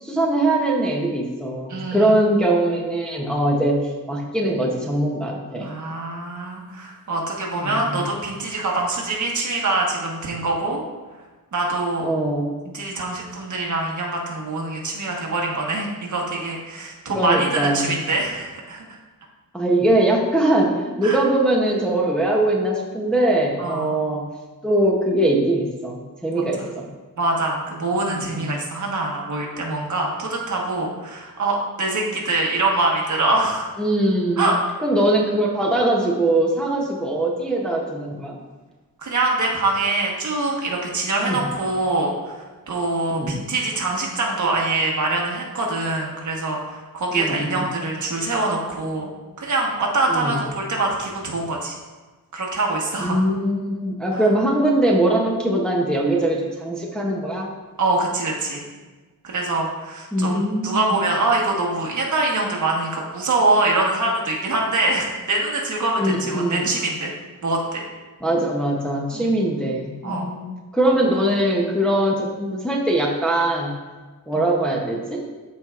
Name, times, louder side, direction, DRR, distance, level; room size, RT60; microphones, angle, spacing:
voice 1, 0.0-5.7 7.6-8.0 12.0-12.5 17.1-17.9 19.5-24.2 24.6-26.9 28.1-28.5 33.8-34.5 34.8-38.4 41.3-41.5 43.1-43.4 47.1-47.7 50.1-50.4 53.0-57.5 60.1-61.0 66.0-66.8 68.2-73.7 74.3-75.2, right 1 dB, ahead, -3 dB, 0.7 m, -21 dB
voice 2, 1.7-2.1 5.6-10.8 11.5-12.1 12.6-18.8 21.0-21.2 23.6-23.9 26.3-26.7 27.2-33.7 34.4-34.5 39.0-49.1 49.4-51.8 52.3-53.2 54.1-54.2 57.8-58.7 59.2-67.1 67.4-67.8 69.1-69.3 70.0-70.3 74.3-74.4, right 2 dB, 55° right, -1 dB, 1.3 m, -24 dB
13.5 x 4.4 x 2.4 m, 1.3 s
wide cardioid pair, 180°, 36 cm